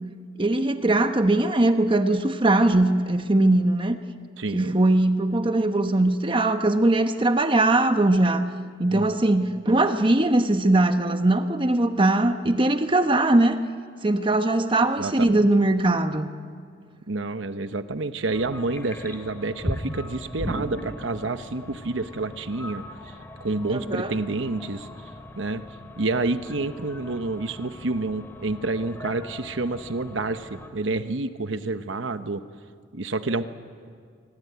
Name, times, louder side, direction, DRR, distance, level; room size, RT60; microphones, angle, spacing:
voice 1, 0.4-4.0 4.5-8.5 8.8-13.6 14.0-16.3 23.7-24.1, right 2 dB, 25° right, 8 dB, 1.0 m, -21 dB
voice 2, 4.4-4.8 8.9-9.1 14.8-15.5 17.1-24.9 25.4-25.6 26.0-32.4 32.9-33.4, right 2 dB, 75° right, 10 dB, 1.0 m, -29 dB
sound 1, 18.3-30.7, equal, 10° left, 2.4 m, -38 dB
25.5 x 24.5 x 9.4 m, 2.1 s
head